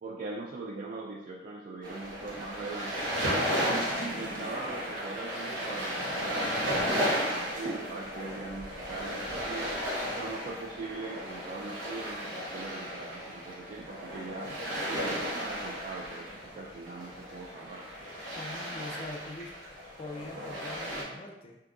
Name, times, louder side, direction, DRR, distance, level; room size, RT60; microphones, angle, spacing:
voice 1, 0.0-3.0 3.6-9.9 10.1-14.5 14.8-17.8, right 3 dB, 45° right, -3 dB, 0.3 m, -41 dB
sound 1, 1.8-21.0, equal, 85° right, 0.9 m, -34 dB
voice 2, 18.4-19.5 20.0-21.6, left 2 dB, 30° left, 1 dB, 0.4 m, -43 dB
2.7 x 2.3 x 3.7 m, 0.92 s
head